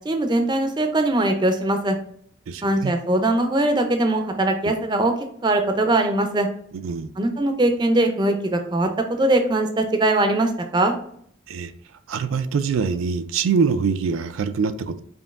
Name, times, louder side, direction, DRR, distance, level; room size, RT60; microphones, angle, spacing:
voice 1, 0.0-2.0 2.6-5.1 5.4-6.5 7.2-10.9, right 1 dB, 20° right, 5 dB, 0.4 m, -21 dB
voice 2, 2.5-2.9 6.7-7.1 11.5-11.7 12.1-15.0, right 5 dB, 85° right, 10 dB, 0.4 m, -24 dB
5.2 x 2.6 x 2.4 m, 0.64 s
head